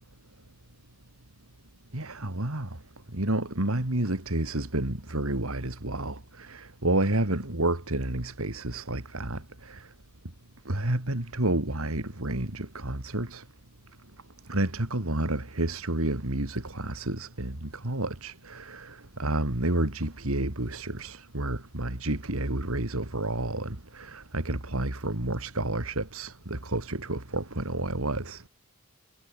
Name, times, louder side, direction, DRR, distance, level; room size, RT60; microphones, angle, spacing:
voice 1, 1.9-2.7 3.1-9.9 10.6-13.4 14.5-28.5, right 1 dB, 70° right, 2.9 m, -30 dB
head